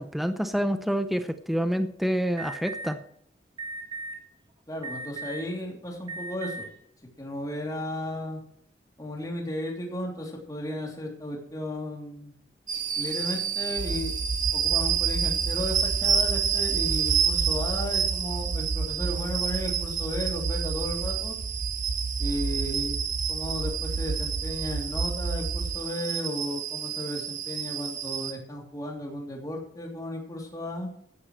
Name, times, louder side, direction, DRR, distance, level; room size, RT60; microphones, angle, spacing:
voice 1, 0.0-3.0, equal, ahead, 8 dB, 0.6 m, -27 dB
Alarm, 2.4-2.9 3.6-4.1 4.8-5.5 6.0-6.6, right 3 dB, 30° right, 2.4 m, -36 dB
voice 2, 4.7-6.7 7.2-8.4 9.0-12.3 12.9-14.1 14.5-21.4 22.2-23.0 23.3-30.9, left 1 dB, 20° left, 0 dB, 3.1 m, -34 dB
sound 1, 12.7-28.3, right 8 dB, 45° right, 2.2 m, -29 dB
sound 2, 13.8-25.8, right 3 dB, 85° right, 0.7 m, -32 dB
15.0 x 11.5 x 3.2 m, 0.67 s
head